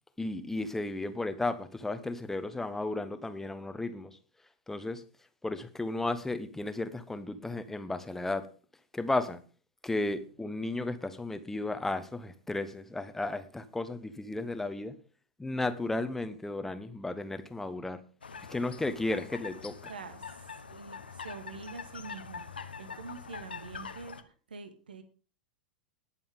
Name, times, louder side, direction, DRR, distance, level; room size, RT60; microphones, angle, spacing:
voice 1, 0.2-4.2 4.7-5.0 5.4-8.5 8.9-9.4 9.8-14.9 15.4-18.0 18.5-19.8, left 2 dB, 5° left, 1.1 m, -34 dB
sound 1, 18.2-24.2, left 5 dB, 75° left, 1.1 m, -44 dB
voice 2, 19.9-25.0, right 4 dB, 70° right, 1.8 m, -46 dB
19.5 x 7.1 x 3.7 m
figure-of-eight pair, 95°, 5 cm